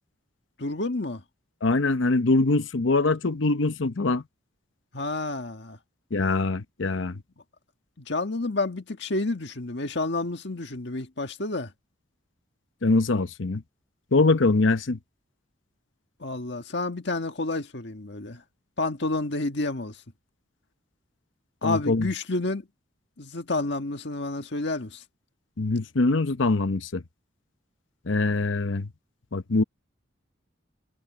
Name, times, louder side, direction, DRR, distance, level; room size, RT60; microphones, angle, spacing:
voice 1, 0.6-1.2 4.9-5.8 8.0-11.7 16.2-18.4 18.8-19.9 21.6-22.7 23.2-25.0, left 2 dB, 60° left, 1.7 m, -30 dB
voice 2, 1.6-4.2 6.1-7.2 12.8-13.6 14.1-15.0 21.6-22.1 25.6-27.0 28.1-28.9 29.3-29.6, left 3 dB, 75° left, 0.9 m, -23 dB
head